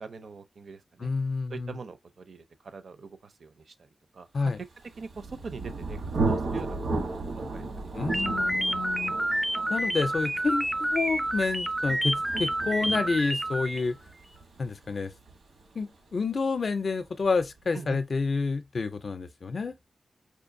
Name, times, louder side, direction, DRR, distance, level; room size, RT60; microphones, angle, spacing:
voice 1, 0.0-1.1 1.5-3.9 4.1-4.5 5.0-8.2 17.7-18.0, right 4 dB, 60° right, 0.5 m, -43 dB
voice 2, 1.0-1.8 4.3-4.6 7.9-9.1 9.7-14.0 14.6-15.1 15.8-19.8, left 4 dB, 50° left, 0.5 m, -29 dB
Thunder, 4.8-16.4, right 3 dB, 90° right, 1.2 m, -35 dB
sound 1, 8.1-13.9, right 1 dB, 10° right, 0.3 m, -29 dB
4.8 x 2.6 x 2.5 m
wide cardioid pair, 155°, 0 cm